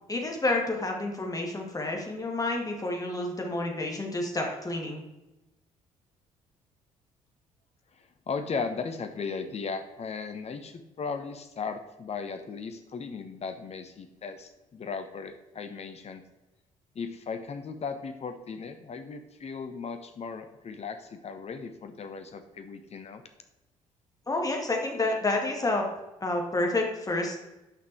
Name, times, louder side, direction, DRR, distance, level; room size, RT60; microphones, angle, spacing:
voice 1, 0.1-5.0 24.3-25.9 26.2-27.4, left 2 dB, 20° left, 1 dB, 2.2 m, -29 dB
voice 2, 7.9-16.2 16.9-23.2, left 5 dB, 40° left, 8 dB, 1.2 m, -37 dB
8.9 x 5.9 x 4.6 m, 0.99 s
figure-of-eight pair, 45°, 17 cm